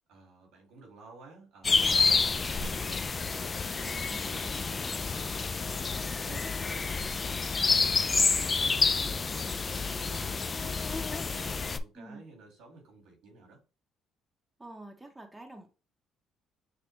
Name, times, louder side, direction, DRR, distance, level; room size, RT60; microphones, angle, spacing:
voice 1, 0.1-4.7 5.2-7.3 7.6-11.0 11.3-13.6, right 3 dB, 85° right, 2.1 m, -53 dB
sound 1, 1.6-11.8, left 4 dB, 30° left, 0.3 m, -29 dB
voice 2, 3.8-4.3 12.0-12.2 14.6-15.7, right 2 dB, 15° right, 0.8 m, -47 dB
6.1 x 2.2 x 3.2 m
cardioid pair, 105°, 0 cm